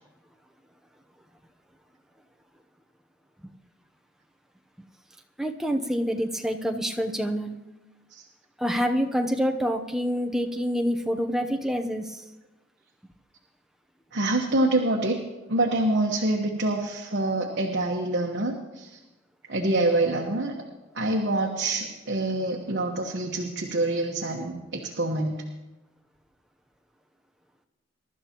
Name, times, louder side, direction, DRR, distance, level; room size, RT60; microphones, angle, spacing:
voice 1, 5.4-7.6 8.6-12.2, equal, 5° right, 3 dB, 0.8 m, -27 dB
voice 2, 14.1-15.2 15.5-19.0 19.5-20.5 20.9-25.3, right 2 dB, 65° right, 0 dB, 1.2 m, -26 dB
23.0 x 12.0 x 3.0 m, 1.1 s
head